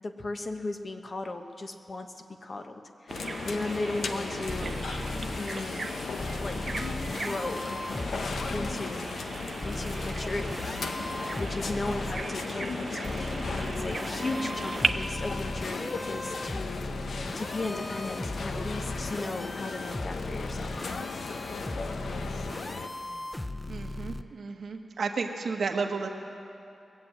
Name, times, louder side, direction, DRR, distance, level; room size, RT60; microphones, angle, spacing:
voice 1, 0.0-4.8 5.4-5.9 6.4-6.6 7.0-7.7 8.5-9.1 9.6-10.7 11.4-16.8 17.3-21.0, left 2 dB, 45° left, 6 dB, 1.0 m, -36 dB
sound 1, 3.1-22.9, left 4 dB, 75° left, 0.8 m, -36 dB
Bird vocalization bird call bird song, 3.1-14.9, right 3 dB, 45° right, 0.6 m, -38 dB
sound 2, 4.5-5.4 6.2-8.8 9.6-12.2 13.0-24.2, left 1 dB, 15° left, 0.4 m, -37 dB
voice 2, 23.7-26.1, right 4 dB, 70° right, 4 dB, 1.2 m, -32 dB
21.0 x 7.7 x 7.8 m, 2.7 s
cardioid pair, 80°, 0 cm